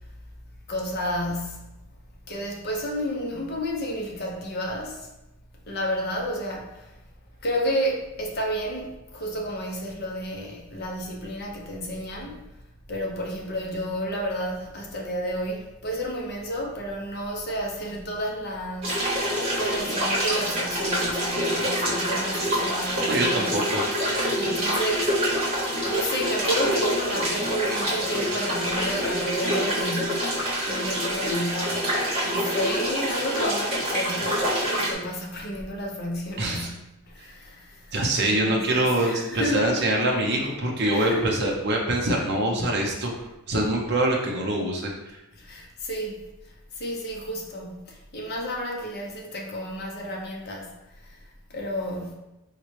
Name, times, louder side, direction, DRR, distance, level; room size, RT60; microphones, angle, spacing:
voice 1, 0.7-1.7 2.3-5.1 5.7-6.9 7.4-12.4 12.9-19.0 19.6-23.6 24.4-25.1 25.9-30.4 30.7-31.9 32.2-36.8 37.1-37.9 38.2-39.7 40.9-41.3 45.4-46.2 46.7-50.7 51.0-51.2 51.5-52.2, equal, 45° left, -1 dB, 0.6 m, -31 dB
sound 1, 18.8-34.9, equal, 25° right, 0.9 m, -26 dB
voice 2, 23.1-23.8 36.4-36.7 37.9-43.1 43.5-45.2, right 1 dB, 50° right, -1 dB, 0.6 m, -24 dB
4.0 x 2.2 x 3.1 m, 0.95 s
head